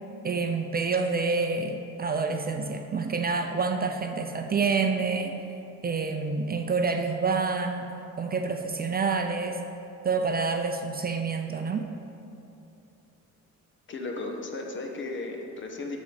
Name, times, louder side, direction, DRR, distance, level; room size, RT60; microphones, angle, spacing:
voice 1, 0.2-5.4 5.8-7.9 8.2-9.6 10.0-11.8, right 4 dB, 30° right, 5 dB, 0.5 m, -27 dB
voice 2, 13.9-16.0, left 2 dB, 40° left, 2 dB, 1.2 m, -35 dB
12.5 x 4.1 x 5.0 m, 2.7 s
cardioid pair, 90°, 30 cm